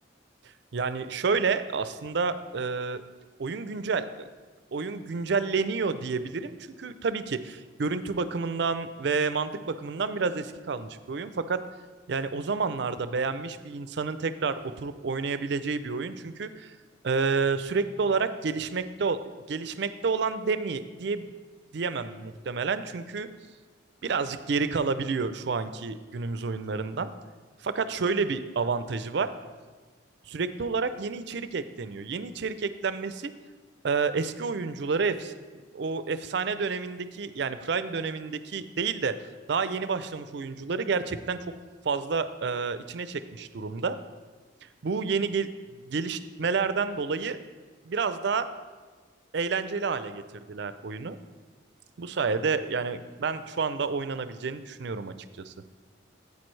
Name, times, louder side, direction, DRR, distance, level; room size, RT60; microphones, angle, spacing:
voice 1, 0.7-3.0 3.4-4.3 4.7-11.6 12.1-16.7 17.0-19.2 19.5-21.3 21.7-23.3 24.0-27.1 27.6-29.3 30.3-33.3 33.8-35.3 35.7-41.4 41.8-44.0 44.8-47.4 47.8-48.5 49.3-51.2 52.0-55.5, right 4 dB, 60° right, 12 dB, 0.4 m, -29 dB
10.5 x 8.4 x 3.2 m, 1.3 s
head